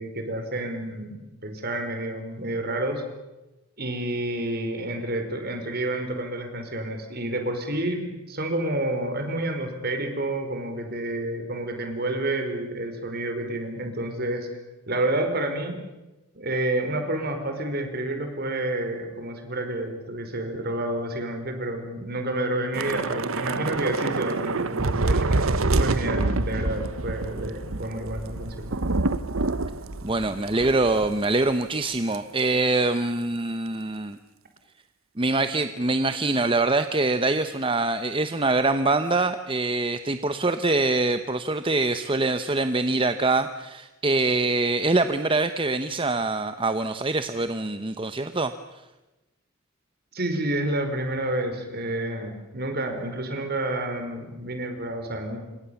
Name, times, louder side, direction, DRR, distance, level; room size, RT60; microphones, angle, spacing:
voice 1, 0.0-3.0 3.8-14.5 14.9-15.8 16.3-28.7 50.1-55.4, right 1 dB, 50° right, 6 dB, 5.1 m, -29 dB
Thunder / Rain, 22.7-31.3 31.6-31.8 32.1-32.4, right 2 dB, 90° right, 1.1 m, -27 dB
voice 2, 30.0-34.2 35.2-48.5, right 2 dB, 25° right, 10 dB, 0.9 m, -24 dB
28.0 x 26.0 x 7.2 m, 1.1 s
head